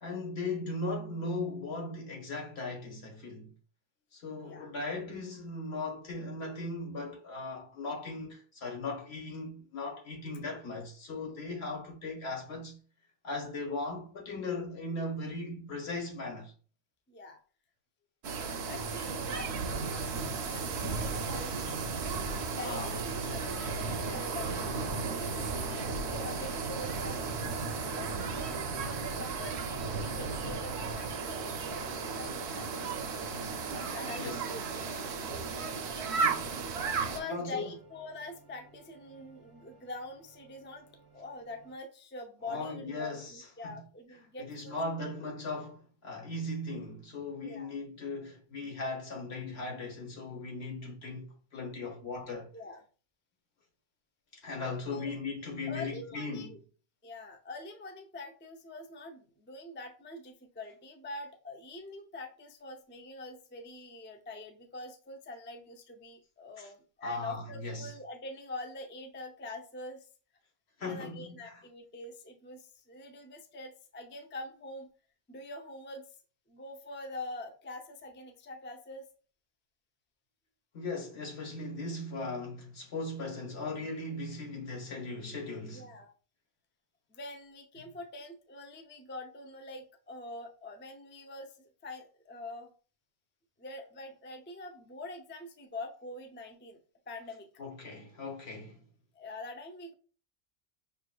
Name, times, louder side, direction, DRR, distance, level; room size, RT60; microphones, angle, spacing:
voice 1, 0.0-3.5 4.1-12.8 13.2-16.5 22.6-23.0 34.1-34.4 36.1-36.5 37.2-37.7 42.5-43.8 44.4-52.5 54.3-56.6 66.6-66.7 67.0-67.9 70.8-71.6 80.7-85.9 97.6-98.8, left 2 dB, 75° left, 1.5 m, -38 dB
voice 2, 17.1-17.4 18.3-21.9 22.4-28.1 28.7-32.7 33.9-35.5 36.9-40.9 41.1-45.1 47.4-47.7 52.5-52.8 54.9-55.1 55.7-56.6 57.0-70.1 70.8-74.9 75.3-76.1 76.5-79.1 85.7-86.1 87.1-92.7 93.6-96.8 97.1-97.5 99.1-99.9, left 2 dB, 15° left, 0.4 m, -45 dB
sound 1, 18.2-37.2, right 4 dB, 80° right, 0.9 m, -34 dB
sound 2, 22.7-41.8, right 1 dB, 25° right, 0.7 m, -51 dB
5.7 x 3.3 x 2.3 m
omnidirectional pair, 1.1 m